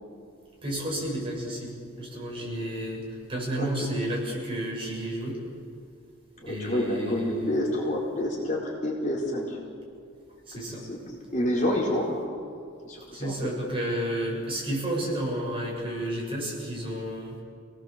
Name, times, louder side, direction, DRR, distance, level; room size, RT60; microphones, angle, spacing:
voice 1, 0.6-5.4 6.5-7.5 10.5-10.9 13.1-17.4, right 1 dB, 25° right, -3 dB, 7.1 m, -31 dB
voice 2, 3.6-3.9 6.4-9.6 10.9-12.3 12.8-13.5, left 1 dB, 35° left, -3 dB, 4.4 m, -28 dB
29.5 x 18.5 x 7.5 m, 2.3 s
head